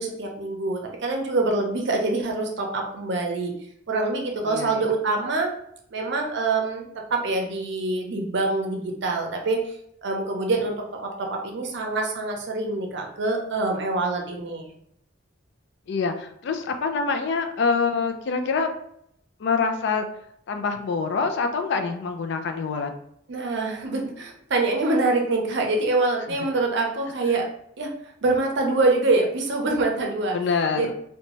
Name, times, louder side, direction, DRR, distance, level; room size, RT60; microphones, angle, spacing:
voice 1, 0.0-3.5 3.9-5.5 5.9-9.6 10.0-14.7 23.3-27.5 27.8-27.9 28.2-30.4 30.8-30.9, right 3 dB, 65° right, 2 dB, 0.6 m, -25 dB
voice 2, 4.5-4.8 15.9-18.7 19.4-20.1 20.5-22.9 30.3-30.9, left 5 dB, 65° left, 7 dB, 0.4 m, -25 dB
2.6 x 2.2 x 3.0 m, 0.71 s
head